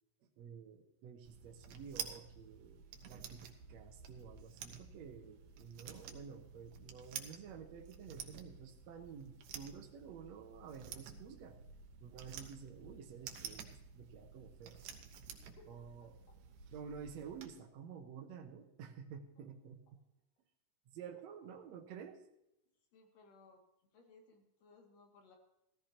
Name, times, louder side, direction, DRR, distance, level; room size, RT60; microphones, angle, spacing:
voice 1, 0.4-11.6 12.0-14.8 15.7-16.1 16.7-20.0 20.9-22.2, right 7 dB, 65° right, 3 dB, 2.0 m, -51 dB
sound 1, 1.2-17.5, right 7 dB, 80° right, 2.7 m, -51 dB
voice 2, 15.4-15.8 22.7-25.4, left 3 dB, 80° left, 1 dB, 3.9 m, -63 dB
16.0 x 14.5 x 2.9 m, 0.84 s
omnidirectional pair, 3.8 m